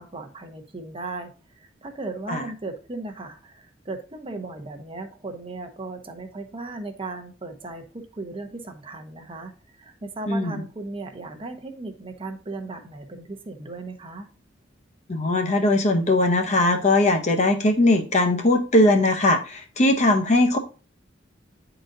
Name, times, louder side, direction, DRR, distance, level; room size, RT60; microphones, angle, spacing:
voice 1, 0.0-7.8 8.1-14.3, right 3 dB, 30° right, 6 dB, 0.7 m, -36 dB
voice 2, 10.3-10.6 15.1-20.6, left 1 dB, 35° left, 5 dB, 0.7 m, -20 dB
9.4 x 3.9 x 2.6 m, 0.35 s
head